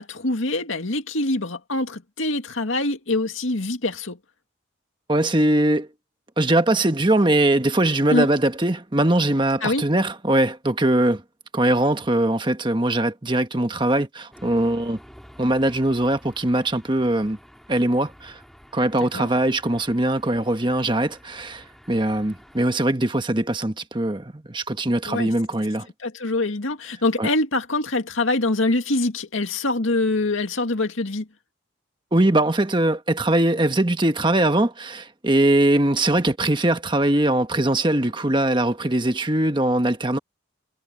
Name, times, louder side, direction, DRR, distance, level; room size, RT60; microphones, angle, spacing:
voice 1, 0.0-4.2 8.1-8.3 9.6-9.8 19.1-19.3 25.1-25.3 26.0-31.3, left 2 dB, 80° left, 2.2 m, -24 dB
voice 2, 5.1-5.9 6.4-11.2 11.5-15.0 15.4-17.4 17.7-18.4 18.7-25.9 27.2-27.3 32.1-40.2, right 1 dB, 25° right, 1.3 m, -21 dB
sound 1, 14.3-22.7, equal, ahead, 3.5 m, -50 dB
head